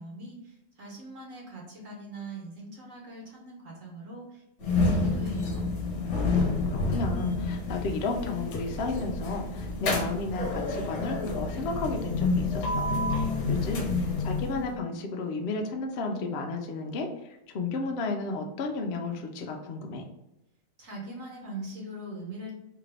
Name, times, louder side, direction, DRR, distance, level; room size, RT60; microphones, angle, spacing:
voice 1, 0.0-5.7 20.8-22.5, right 2 dB, 60° right, -2 dB, 1.2 m, -41 dB
sound 1, 4.6-14.8, left 3 dB, 55° left, 1.0 m, -29 dB
voice 2, 6.7-17.1 17.5-20.0, left 3 dB, 70° left, 3 dB, 0.5 m, -33 dB
3.7 x 2.5 x 3.2 m, 0.90 s
omnidirectional pair, 1.7 m